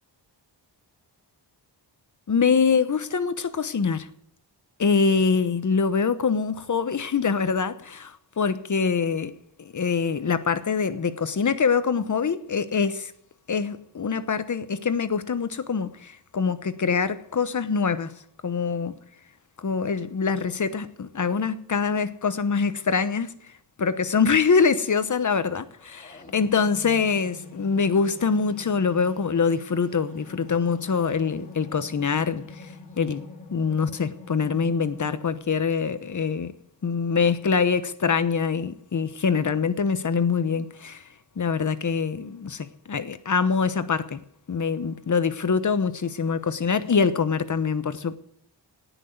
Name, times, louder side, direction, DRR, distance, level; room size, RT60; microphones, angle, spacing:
voice 1, 2.3-4.1 4.8-13.1 13.5-18.1 18.4-19.0 19.6-23.3 23.8-33.2 33.5-36.5 36.8-41.0 41.4-44.2 44.5-48.2, left 5 dB, 45° left, 1.0 m, -24 dB
sound 1, 25.6-35.4, left 3 dB, 20° left, 3.3 m, -44 dB
18.5 x 6.2 x 9.3 m
wide cardioid pair, 170°, 42 cm